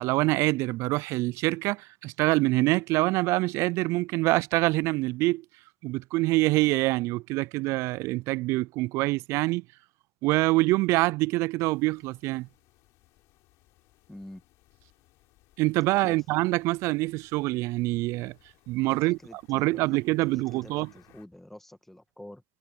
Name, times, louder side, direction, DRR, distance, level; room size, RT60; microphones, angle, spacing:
voice 1, 0.0-5.4 5.8-9.6 10.2-12.5 15.6-18.3 18.7-19.2 19.5-20.9, right 21 dB, 60° right, 0.3 m, -25 dB
sound 1, 11.6-21.3, left 19 dB, 65° left, 3.6 m, -63 dB
voice 2, 14.1-14.4 16.0-16.2 18.9-22.4, left 1 dB, 5° left, 2.0 m, -47 dB
hypercardioid pair, 85°, 5 cm